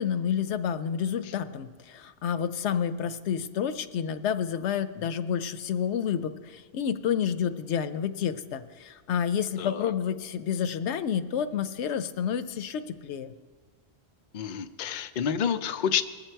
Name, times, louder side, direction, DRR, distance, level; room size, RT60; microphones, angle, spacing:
voice 1, 0.0-13.3, left 8 dB, 90° left, 12 dB, 0.9 m, -29 dB
voice 2, 9.6-9.9 14.3-16.0, left 8 dB, 55° left, 9 dB, 0.6 m, -29 dB
20.5 x 7.6 x 4.5 m, 1.5 s
omnidirectional pair, 1.1 m